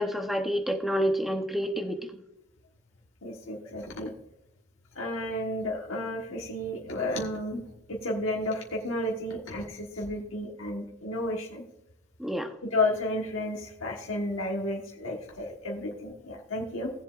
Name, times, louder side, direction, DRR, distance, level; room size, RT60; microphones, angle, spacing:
voice 1, 0.0-2.2 12.2-12.5, equal, ahead, 5 dB, 0.9 m, -28 dB
voice 2, 3.2-4.1 4.9-7.6 7.9-11.6 12.6-16.9, left 1 dB, 90° left, -1 dB, 1.4 m, -32 dB
18.0 x 7.4 x 2.5 m, 0.82 s
head